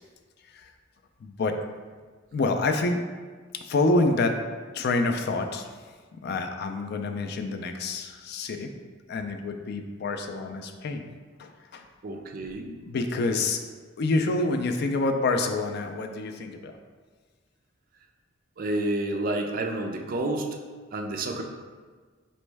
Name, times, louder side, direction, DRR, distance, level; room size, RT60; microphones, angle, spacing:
voice 1, 1.2-1.6 2.3-3.0 3.5-4.3 4.7-5.7 6.2-8.7 9.1-11.1 11.4-11.8 12.8-13.6 14.0-16.8, left 2 dB, 55° left, 6 dB, 0.4 m, -27 dB
voice 2, 12.0-12.8 18.6-20.5 20.9-21.4, right 2 dB, 45° right, 3 dB, 0.4 m, -29 dB
4.3 x 3.1 x 3.3 m, 1.5 s
head